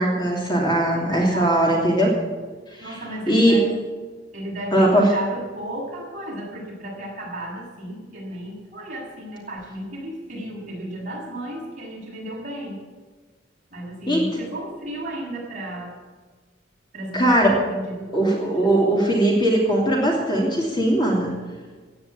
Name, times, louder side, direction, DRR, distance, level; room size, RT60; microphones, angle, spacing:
voice 1, 0.0-2.2 3.3-3.6 4.7-5.1 14.1-14.2 17.1-17.5 18.1-21.3, right 1 dB, 25° left, -2 dB, 2.8 m, -19 dB
voice 2, 0.8-1.8 2.8-3.7 4.3-12.8 13.7-15.9 16.9-18.8, right 1 dB, 40° right, -4 dB, 6.8 m, -34 dB
16.0 x 9.5 x 8.5 m, 1.4 s
head